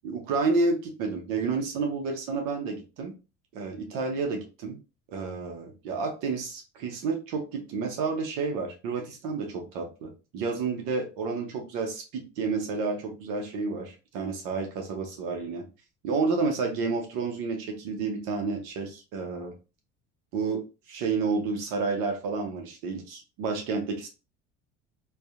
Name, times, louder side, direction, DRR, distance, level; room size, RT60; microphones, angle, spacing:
voice 1, 0.0-3.1 3.5-4.8 5.1-15.7 16.0-19.5 20.3-24.1, right 4 dB, 75° right, 2 dB, 0.8 m, -30 dB
2.7 x 2.3 x 2.4 m, 0.30 s
supercardioid pair, 80°, 34 cm